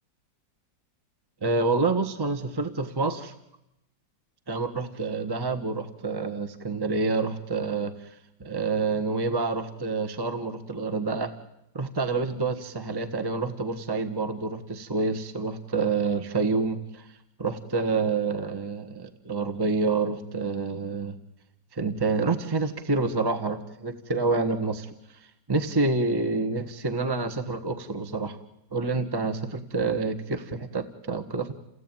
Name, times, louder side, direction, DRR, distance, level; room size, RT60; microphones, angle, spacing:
voice 1, 1.4-3.3 4.5-11.3 11.7-17.1 17.4-21.1 21.7-24.9 25.5-28.4 28.7-31.5, right 3 dB, 15° right, 8 dB, 1.2 m, -28 dB
29.5 x 17.0 x 9.1 m, 0.87 s
omnidirectional pair, 2.0 m